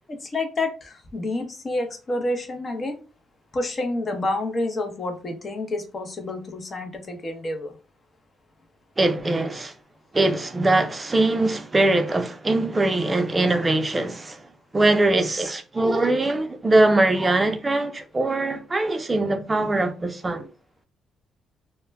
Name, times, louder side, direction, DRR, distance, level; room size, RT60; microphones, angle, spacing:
voice 1, 0.3-0.7 1.1-3.0 3.5-7.7, left 2 dB, 35° left, 0.7 m, -28 dB
voice 2, 9.0-9.7 10.1-14.4 14.7-20.4, right 2 dB, 25° right, 0.5 m, -22 dB
2.1 x 2.1 x 3.3 m
cardioid pair, 90°, 0 cm